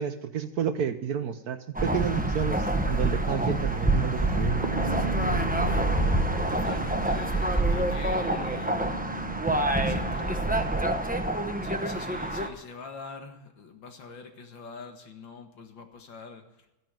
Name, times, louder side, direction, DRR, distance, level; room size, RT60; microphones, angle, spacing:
voice 1, 0.0-4.6, right 8 dB, 60° right, 10 dB, 1.1 m, -30 dB
sound 1, 1.7-12.5, right 1 dB, 5° right, 0.6 m, -27 dB
sound 2, 4.0-10.1, right 2 dB, 30° right, 1.2 m, -34 dB
voice 2, 6.5-8.9 9.8-10.8 11.6-16.4, left 4 dB, 70° left, 6 dB, 2.4 m, -44 dB
13.5 x 10.5 x 9.0 m, 0.96 s
omnidirectional pair, 2.1 m